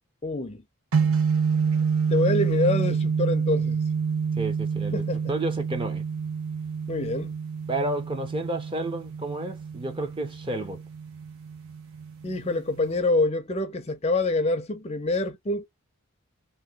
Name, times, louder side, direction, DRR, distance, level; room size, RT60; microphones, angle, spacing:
voice 1, 0.2-0.6 2.1-3.8 4.9-5.3 6.9-7.3 12.2-15.7, left 2 dB, 30° left, 0.4 m, -26 dB
sound 1, 0.9-13.0, right 6 dB, 75° right, 0.7 m, -28 dB
voice 2, 4.4-5.0 5.3-6.0 7.7-10.8, right 2 dB, 20° right, 0.5 m, -31 dB
2.9 x 2.2 x 3.5 m
head